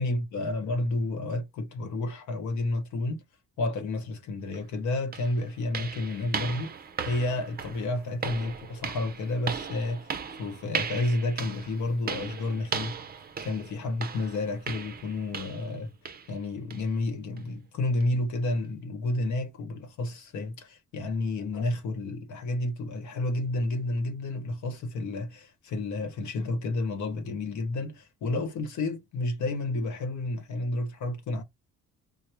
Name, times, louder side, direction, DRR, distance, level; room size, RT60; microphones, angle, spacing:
voice 1, 0.0-3.2 3.6-6.7 7.0-10.1 10.4-13.0 13.4-15.9 16.3-31.4, left 2 dB, 75° left, 0.9 m, -30 dB
sound 1, 4.5-4.6 5.1-15.8 16.1-16.3 16.7-16.9 17.4-17.5 18.0-18.1, right 6 dB, 30° right, 0.5 m, -37 dB
4.6 x 2.0 x 2.9 m
cardioid pair, 90°, 30 cm